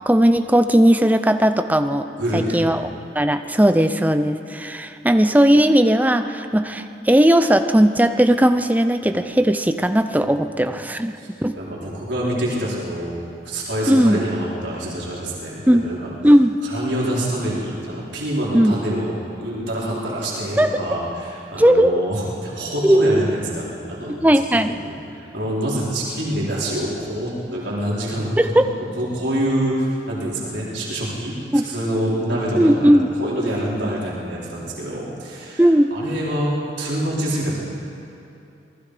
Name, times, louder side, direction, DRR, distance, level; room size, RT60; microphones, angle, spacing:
voice 1, 0.1-2.1 2.3-2.9 3.1-11.1 11.4-11.6 13.9-14.2 15.7-15.8 16.2-16.6 18.5-18.8 20.6-20.7 21.6-22.1 22.8-23.4 24.2-24.8 28.4-28.7 31.5-31.6 32.6-33.1 35.6-35.9, equal, 10° right, 7 dB, 0.7 m, -17 dB
voice 2, 2.1-2.7 11.1-11.3 11.5-13.2 13.4-16.0 16.6-24.2 24.8-28.4 28.9-31.4 31.6-35.6 35.9-37.6, right 1 dB, 80° right, -6 dB, 4.8 m, -26 dB
27.5 x 20.0 x 5.1 m, 2.8 s
head